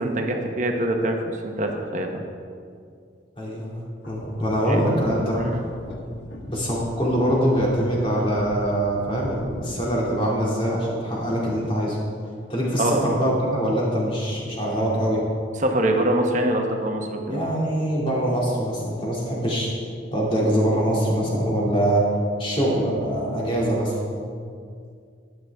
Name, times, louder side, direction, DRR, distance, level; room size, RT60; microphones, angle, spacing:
voice 1, 0.0-2.2 4.7-4.8 5.4-5.6 12.8-13.0 15.6-17.4, right 1 dB, 40° right, 3 dB, 1.0 m, -24 dB
voice 2, 3.4-5.4 6.5-12.0 12.5-15.2 17.3-19.7 20.1-22.0 22.4-24.0, equal, 30° left, -5 dB, 2.5 m, -23 dB
sound 1, 4.0-10.2, equal, 65° left, 1.3 m, -39 dB
12.5 x 9.8 x 3.5 m, 2.3 s
head